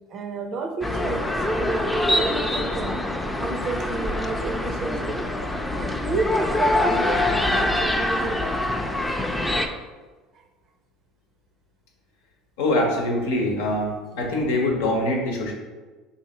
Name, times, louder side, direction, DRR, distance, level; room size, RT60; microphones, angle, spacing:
voice 1, 0.1-3.0 3.4-5.2 5.7-8.6, right 3 dB, 50° right, 5 dB, 0.5 m, -31 dB
sound 1, 0.8-9.7, left 1 dB, 10° left, 0.5 m, -24 dB
voice 2, 12.6-15.5, left 1 dB, 80° left, 0 dB, 0.9 m, -24 dB
3.9 x 2.7 x 4.1 m, 1.3 s
hypercardioid pair, 80°, 0 cm